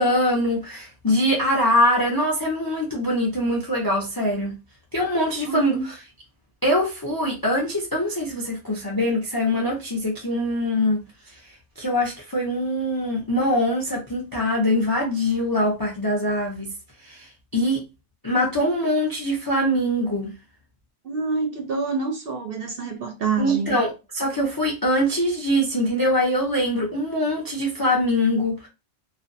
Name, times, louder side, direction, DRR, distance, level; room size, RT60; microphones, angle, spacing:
voice 1, 0.0-4.6 4.9-5.8 6.6-11.0 11.8-16.7 17.0-17.8 18.2-20.3 23.4-28.7, left 1 dB, 35° left, 0.3 m, -23 dB
voice 2, 5.4-5.9 21.0-23.8, right 4 dB, 60° right, 0.7 m, -27 dB
2.5 x 2.2 x 2.5 m
omnidirectional pair, 1.3 m